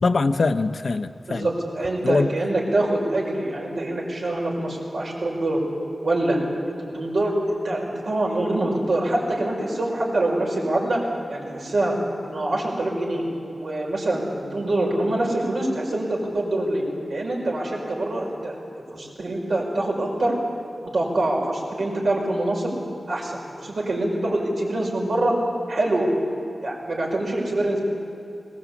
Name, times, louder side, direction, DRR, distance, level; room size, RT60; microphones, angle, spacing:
voice 1, 0.0-1.5 2.0-2.3, left 3 dB, 60° left, 9 dB, 0.8 m, -22 dB
voice 2, 1.3-5.6 6.0-6.4 6.8-11.0 11.3-12.0 12.2-13.3 13.6-18.6 18.9-20.4 20.8-22.7 23.1-25.4 25.7-26.1 26.6-27.8, right 1 dB, 80° right, -2 dB, 5.9 m, -25 dB
21.5 x 19.0 x 8.5 m, 2.8 s
wide cardioid pair, 115°, 0 cm